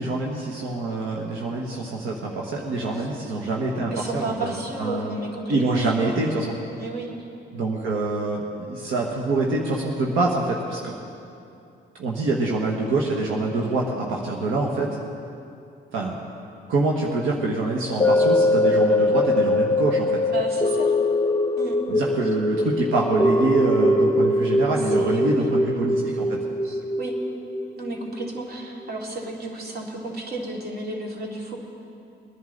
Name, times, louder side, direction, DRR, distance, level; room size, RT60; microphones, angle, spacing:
voice 1, 0.0-4.5 4.8-5.2 5.5-6.6 7.5-10.9 12.0-15.0 15.9-16.1 16.7-20.2 21.9-26.4, right 2 dB, 85° right, -2 dB, 1.4 m, -25 dB
voice 2, 3.9-6.4 6.8-7.1 20.3-20.9 21.6-21.8 24.9-25.5 26.6-27.1 27.8-31.6, right 2 dB, 50° right, -1 dB, 2.6 m, -32 dB
sound 1, 18.0-28.4 28.8-28.9, left 1 dB, 15° left, 1.0 m, -22 dB
22.0 x 11.0 x 4.0 m, 2.7 s
cardioid pair, 90°, 20 cm